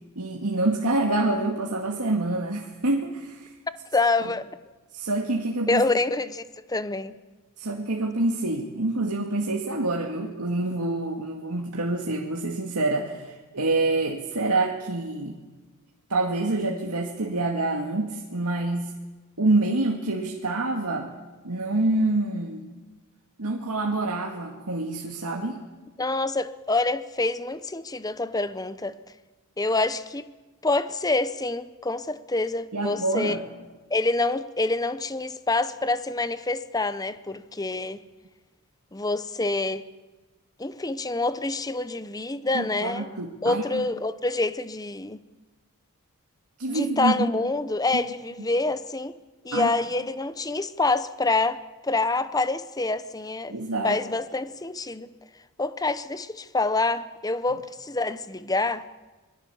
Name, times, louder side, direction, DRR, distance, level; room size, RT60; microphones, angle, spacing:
voice 1, 0.2-3.5 4.9-5.8 7.6-15.4 16.1-18.9 19.4-21.1 21.4-22.6 23.4-25.6 32.7-33.4 42.5-43.8 46.6-47.3 49.5-49.7 53.5-54.0, right 2 dB, 90° right, 2.0 m, -26 dB
voice 2, 3.9-4.5 5.7-6.4 6.7-7.2 26.0-29.0 29.6-30.3 30.6-33.3 33.9-38.0 38.9-39.8 40.6-43.1 43.4-45.2 46.7-49.1 49.4-53.5 53.8-55.1 55.6-58.9, left 2 dB, 15° left, 0.8 m, -26 dB
25.5 x 21.0 x 7.1 m
head